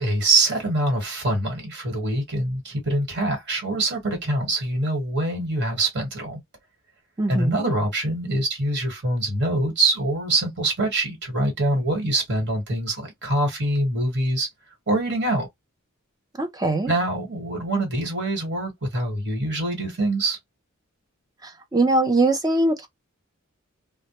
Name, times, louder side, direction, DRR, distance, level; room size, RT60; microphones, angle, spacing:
voice 1, 0.0-6.4 7.3-14.5 14.9-15.5 16.9-20.4, right 2 dB, 55° right, 1.3 m, -24 dB
voice 2, 7.2-7.7 16.4-16.9 21.7-22.9, right 2 dB, 20° right, 0.5 m, -21 dB
2.1 x 2.1 x 2.8 m
head